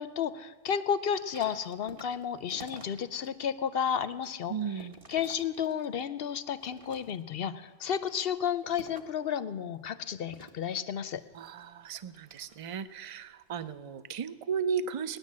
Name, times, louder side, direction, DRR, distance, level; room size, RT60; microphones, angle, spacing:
voice 1, 0.0-11.2, left 8 dB, 60° left, 13 dB, 0.7 m, -32 dB
sound 1, 1.1-3.3 3.7-6.1 6.5-7.4 7.9-9.3 10.3-12.9 13.4-13.7, right 1 dB, 25° right, 1.4 m, -52 dB
voice 2, 4.5-5.0 11.3-15.2, right 6 dB, 45° right, 13 dB, 0.4 m, -35 dB
19.0 x 10.5 x 7.4 m, 1.4 s
omnidirectional pair, 1.4 m